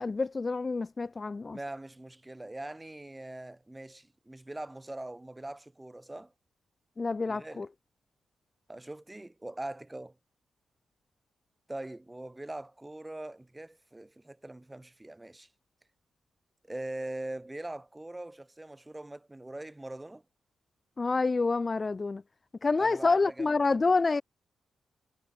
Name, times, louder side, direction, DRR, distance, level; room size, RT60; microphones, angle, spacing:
voice 1, 0.0-1.6 7.0-7.7 21.0-22.2 22.6-24.2, left 3 dB, 35° left, 0.4 m, -27 dB
voice 2, 1.5-6.3 7.2-7.7 8.7-10.1 11.7-15.5 16.7-20.2 22.8-23.5, right 1 dB, 15° right, 2.1 m, -42 dB
cardioid pair, 75°, 0 cm